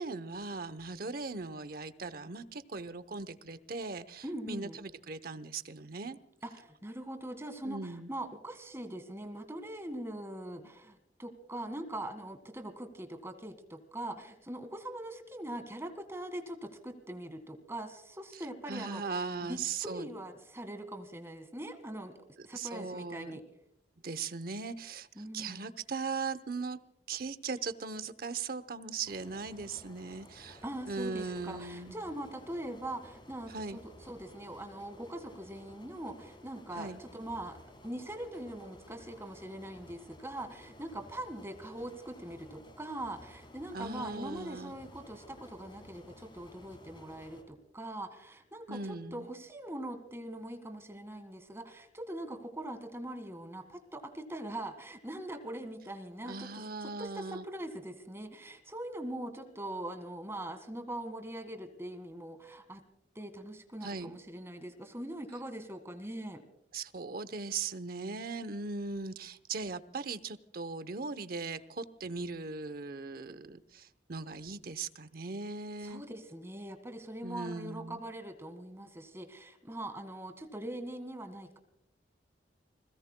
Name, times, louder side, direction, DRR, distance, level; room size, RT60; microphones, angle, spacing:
voice 1, 0.0-6.2 7.6-8.1 18.3-18.4 18.7-20.1 22.5-23.4 24.0-25.1 25.3-26.8 27.1-31.9 33.5-33.8 36.8-37.0 43.7-44.7 48.7-49.3 56.2-57.4 63.8-64.2 66.7-76.0 77.2-78.0, right 4 dB, 55° right, 13 dB, 0.8 m, -39 dB
voice 2, 4.2-4.8 6.4-22.1 22.4-23.4 25.2-25.7 30.6-37.6 37.8-62.8 63.2-66.4 75.8-81.6, right 1 dB, 15° right, 9 dB, 1.7 m, -42 dB
sound 1, 29.0-47.4, left 1 dB, 25° left, 3.5 m, -55 dB
29.5 x 21.0 x 2.2 m, 0.79 s
head